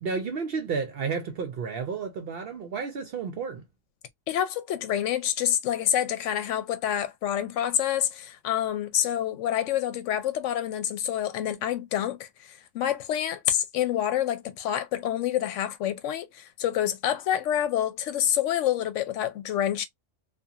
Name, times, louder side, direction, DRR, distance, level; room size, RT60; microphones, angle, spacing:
voice 1, 0.0-3.6, right 5 dB, 60° right, 0.7 m, -31 dB
voice 2, 4.3-19.9, left 11 dB, 80° left, 0.9 m, -27 dB
2.8 x 2.3 x 2.3 m
omnidirectional pair, 1.3 m